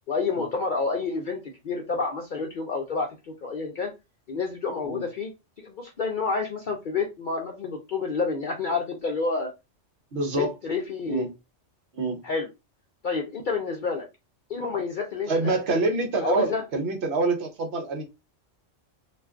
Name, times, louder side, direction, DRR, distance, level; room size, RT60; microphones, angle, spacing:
voice 1, 0.1-3.1 3.4-3.9 4.3-5.3 5.6-9.5 10.4-11.3 12.2-12.5 13.0-14.1 14.5-15.6 16.2-16.6, left 4 dB, 60° left, 0.5 m, -29 dB
voice 2, 10.1-10.5 11.1-11.3 11.9-12.2 15.3-18.0, right 3 dB, 60° right, 0.9 m, -26 dB
2.5 x 2.2 x 3.4 m
omnidirectional pair, 1.3 m